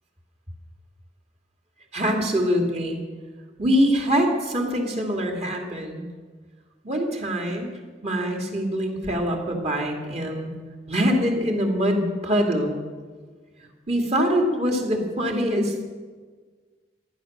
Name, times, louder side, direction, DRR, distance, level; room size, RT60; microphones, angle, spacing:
voice 1, 1.9-3.0 3.6-6.0 6.8-7.7 8.0-10.5 10.9-12.7 13.9-15.8, equal, 40° right, 2 dB, 2.5 m, -24 dB
15.5 x 11.5 x 6.6 m, 1.5 s
head